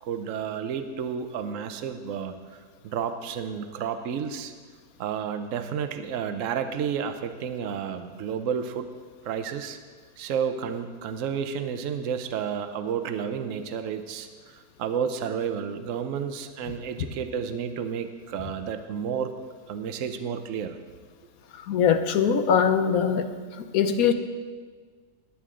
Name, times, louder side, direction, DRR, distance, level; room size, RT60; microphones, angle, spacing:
voice 1, 0.0-2.3 2.8-4.5 5.0-8.9 9.2-9.8 10.2-19.3 19.7-20.8, right 7 dB, 65° right, 8 dB, 1.0 m, -31 dB
voice 2, 21.7-23.3 23.7-24.1, left 7 dB, 75° left, 9 dB, 1.2 m, -21 dB
18.5 x 8.5 x 3.7 m, 1.5 s
omnidirectional pair, 1.6 m